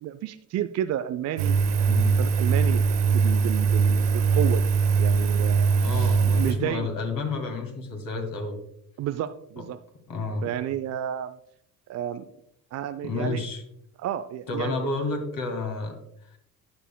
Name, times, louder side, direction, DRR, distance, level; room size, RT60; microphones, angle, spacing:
voice 1, 0.0-2.8 3.1-4.7 5.0-5.7 6.2-6.9 9.0-9.8 10.4-11.4 11.9-12.3 12.7-13.5 14.0-14.7 15.0-15.1, right 11 dB, 35° right, 9 dB, 0.5 m, -31 dB
Engine, 1.4-6.5, right 5 dB, 75° right, 1.1 m, -21 dB
voice 2, 5.6-8.6 9.6-9.7 10.1-10.5 13.0-13.6 14.5-16.0, left 3 dB, 40° left, 5 dB, 2.2 m, -30 dB
19.5 x 6.9 x 2.2 m, 0.75 s
figure-of-eight pair, 50°, 49 cm